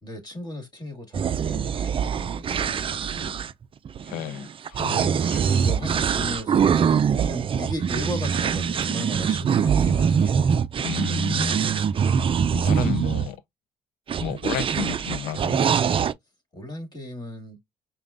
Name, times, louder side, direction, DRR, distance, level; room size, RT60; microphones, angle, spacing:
voice 1, 0.0-3.4 5.0-6.8 7.1-10.4 16.5-17.6, equal, 25° left, 2.0 m, -36 dB
sound 1, 1.1-13.3 14.1-16.1, right 7 dB, 35° right, 0.4 m, -23 dB
voice 2, 4.0-5.9 10.8-12.2 12.5-13.4 14.2-15.6, left 10 dB, 80° left, 0.5 m, -33 dB
5.1 x 2.2 x 2.5 m
supercardioid pair, 65°, 15 cm